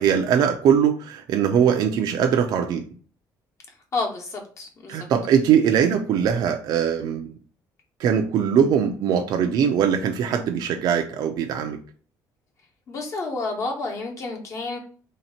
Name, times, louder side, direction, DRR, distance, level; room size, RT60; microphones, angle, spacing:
voice 1, 0.0-2.8 4.9-7.3 8.0-11.8, right 8 dB, 65° right, 4 dB, 0.5 m, -21 dB
voice 2, 3.9-5.1 12.9-14.8, left 3 dB, 40° left, 1 dB, 1.0 m, -30 dB
3.2 x 2.8 x 4.3 m, 0.42 s
cardioid pair, 155°, 7 cm